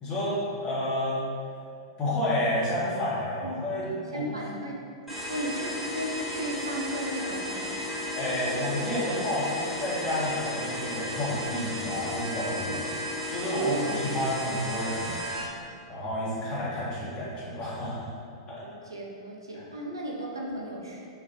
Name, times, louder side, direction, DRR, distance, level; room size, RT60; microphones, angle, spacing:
voice 1, 0.0-1.2 2.0-4.2 8.1-12.8 13.3-15.5 15.8-18.1 18.5-18.6, left 1 dB, 30° left, -8 dB, 1.0 m, -30 dB
voice 2, 3.4-4.8 5.3-7.8 12.7-13.1 13.5-13.9 18.6-21.1, right 1 dB, 75° right, -2 dB, 0.5 m, -36 dB
sound 1, 5.1-15.4, left 1 dB, ahead, 1.1 m, -34 dB
3.8 x 2.4 x 2.7 m, 2.4 s
figure-of-eight pair, 100°, 2 cm